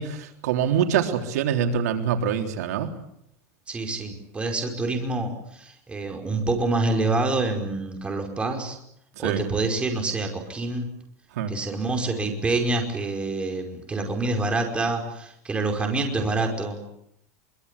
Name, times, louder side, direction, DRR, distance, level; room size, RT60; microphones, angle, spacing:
voice 1, 0.0-2.9 9.2-9.4 11.3-11.5, right 8 dB, 90° right, 4 dB, 3.6 m, -25 dB
voice 2, 3.7-8.8 9.2-10.9 11.5-16.8, right 2 dB, 15° right, 3 dB, 5.2 m, -27 dB
24.5 x 24.0 x 8.3 m, 0.74 s
supercardioid pair, 150°, 8 cm